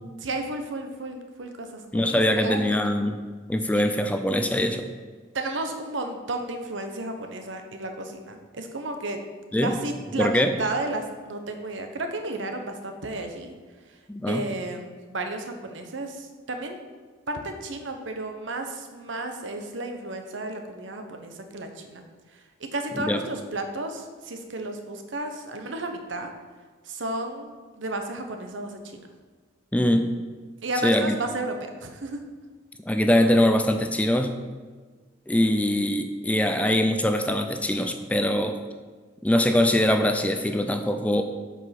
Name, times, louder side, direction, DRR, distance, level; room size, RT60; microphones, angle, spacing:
voice 1, 0.2-2.9 3.7-3.9 5.3-9.2 9.6-13.5 13.9-14.0 14.3-16.8 17.3-22.0 22.3-26.3 26.8-29.0 30.6-32.2, right 2 dB, 75° right, 5 dB, 1.0 m, -33 dB
voice 2, 1.9-3.2 3.5-4.8 9.5-9.7 10.2-10.5 14.1-14.4 22.9-23.2 29.7-30.1 30.8-31.1 32.9-34.3 35.3-38.6 39.2-41.2, left 1 dB, 10° left, 6 dB, 0.5 m, -22 dB
7.9 x 5.2 x 5.9 m, 1.5 s
head